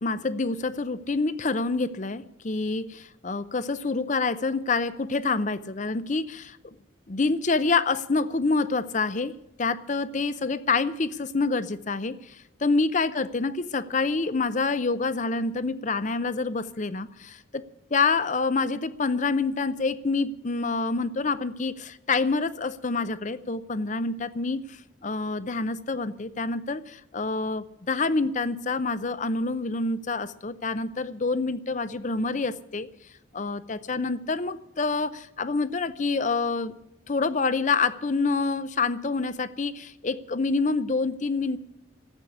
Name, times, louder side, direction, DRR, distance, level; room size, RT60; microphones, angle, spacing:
voice 1, 0.0-6.8 7.1-17.6 17.9-32.9 33.3-36.7 37.1-41.6, left 3 dB, 40° left, 15 dB, 0.6 m, -27 dB
14.0 x 8.3 x 9.7 m, 0.88 s
head